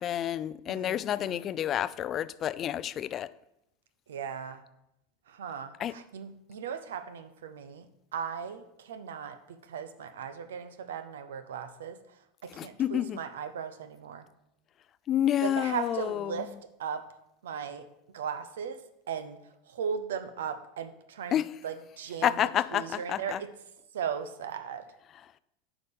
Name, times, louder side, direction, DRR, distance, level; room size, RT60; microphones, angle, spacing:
voice 1, 0.0-3.3 5.8-6.0 12.5-13.2 15.1-16.5 21.3-21.5 22.2-23.4, left 10 dB, 35° left, 0.3 m, -29 dB
voice 2, 0.7-1.5 4.1-4.6 5.3-14.3 15.4-16.5 16.8-17.0 17.4-17.9 18.1-19.4 19.7-22.4 22.7-23.5 23.9-24.9, right 7 dB, 90° right, 0.7 m, -37 dB
9.4 x 5.0 x 5.3 m
supercardioid pair, 115°, 0 cm